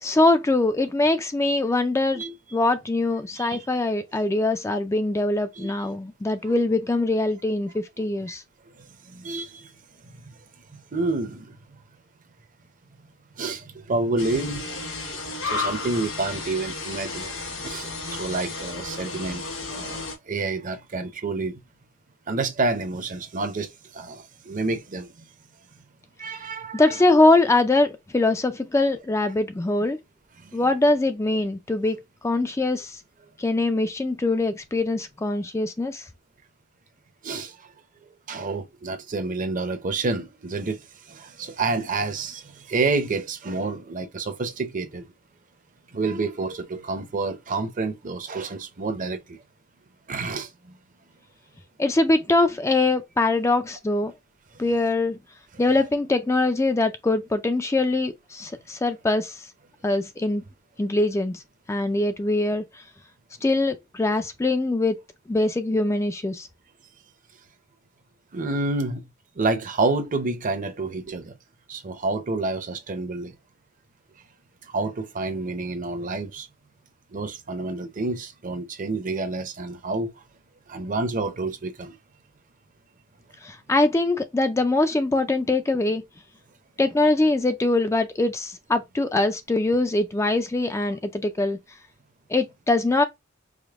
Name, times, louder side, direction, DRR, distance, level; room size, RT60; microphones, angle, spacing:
voice 1, 0.0-2.2 2.5-8.4 26.7-30.0 30.5-32.0 32.2-33.0 33.4-36.1 51.8-54.1 54.6-55.2 55.6-59.5 59.8-60.4 60.8-61.4 61.7-62.8 63.4-65.0 65.3-66.5 83.4-86.0 86.8-91.6 92.3-93.0, left 2 dB, 15° left, 0.3 m, -23 dB
voice 2, 8.8-9.7 10.2-10.3 10.7-11.6 13.4-14.6 15.4-17.3 17.6-19.4 19.7-21.6 22.3-25.3 26.2-27.0 30.4-30.5 37.2-37.5 38.3-45.0 45.9-49.4 50.1-50.8 68.3-69.0 69.4-71.3 71.7-73.4 74.7-76.5 77.1-80.1 80.7-82.0, right 3 dB, 40° right, 0.7 m, -29 dB
sound 1, 14.2-20.1, left 3 dB, 75° left, 2.1 m, -33 dB
5.0 x 2.1 x 3.4 m
head